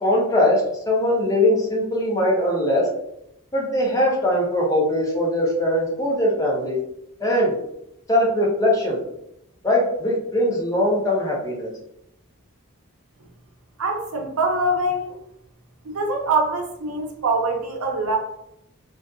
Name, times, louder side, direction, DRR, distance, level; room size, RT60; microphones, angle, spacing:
voice 1, 0.0-2.9 3.5-6.8 7.2-7.6 8.1-9.0 9.6-11.7, left 1 dB, 15° left, -3 dB, 0.5 m, -21 dB
voice 2, 13.8-15.2 15.8-18.2, right 2 dB, 80° right, 1 dB, 0.6 m, -24 dB
2.5 x 2.4 x 2.3 m, 0.79 s
head